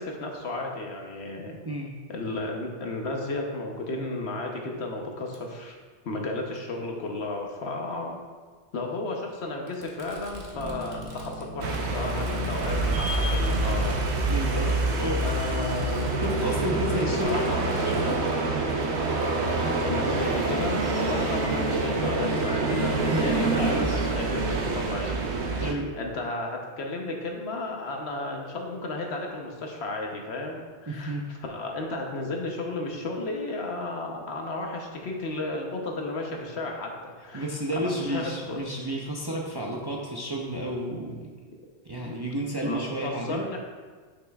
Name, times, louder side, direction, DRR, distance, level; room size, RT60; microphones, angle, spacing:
voice 1, 0.0-1.5 2.1-5.8 6.0-8.2 8.7-14.0 15.2-16.4 16.9-17.8 19.8-23.8 24.1-25.2 25.4-37.5 37.8-38.6 42.0-43.6, left 2 dB, 65° left, 1 dB, 1.2 m, -33 dB
Fireworks, 5.3-5.4 6.6-6.7 7.9-8.0 9.7-18.4, right 1 dB, 55° right, 1.3 m, -45 dB
Bass guitar, 10.5-14.2, equal, 30° left, 1.3 m, -45 dB
sound 1, 11.6-25.7, right 2 dB, 70° right, 1.0 m, -26 dB
voice 2, 14.3-15.3 16.2-18.2 23.1-24.1 25.6-25.9 30.9-31.3 37.3-41.2 41.9-43.5, right 1 dB, 30° right, -2 dB, 0.5 m, -31 dB
9.5 x 6.0 x 2.4 m, 1.5 s
omnidirectional pair, 1.2 m